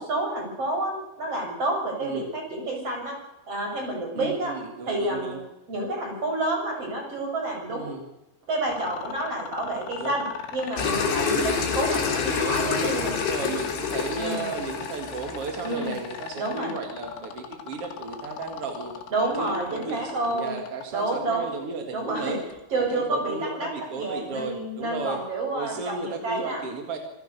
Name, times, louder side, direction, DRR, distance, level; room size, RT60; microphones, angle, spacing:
voice 1, 0.0-3.1 3.5-4.5 4.9-5.4 5.7-8.0 8.5-10.2 10.5-13.1 14.1-14.5 15.6-15.9 16.3-16.7 19.1-20.6 20.9-21.5 21.9-22.3 22.7-23.7 24.0-26.6, right 2 dB, 30° right, 2 dB, 6.8 m, -29 dB
voice 2, 4.1-5.4 7.7-8.0 10.0-10.1 11.2-11.6 12.2-19.0 19.4-22.4 22.9-25.2 25.5-27.0, right 4 dB, 45° right, 5 dB, 2.0 m, -34 dB
sound 1, 8.7-20.8 22.5-22.6, left 7 dB, 85° left, 4.7 m, -39 dB
sound 2, 10.8-16.2, left 6 dB, 60° left, 5.5 m, -28 dB
26.0 x 17.5 x 6.7 m, 0.94 s
omnidirectional pair, 5.6 m